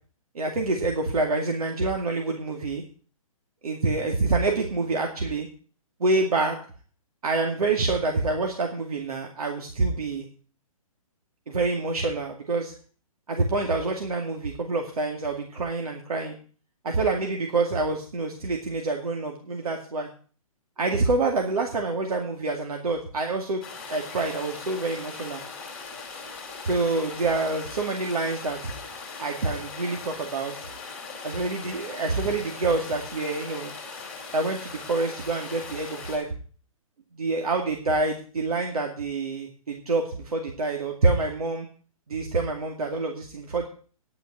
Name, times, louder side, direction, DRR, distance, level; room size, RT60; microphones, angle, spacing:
voice 1, 0.3-2.8 3.6-5.5 6.0-6.6 7.2-10.3 11.5-12.7 13.3-16.4 16.8-20.1 20.8-23.6 23.9-25.4 26.6-28.7 29.2-30.5 31.2-33.7 34.3-36.3 37.2-41.7 42.1-43.7, right 3 dB, 85° right, 2 dB, 2.3 m, -27 dB
sound 1, 23.6-36.2, left 4 dB, 5° left, 2.7 m, -39 dB
10.5 x 6.4 x 8.8 m, 0.41 s
hypercardioid pair, 170°, 18 cm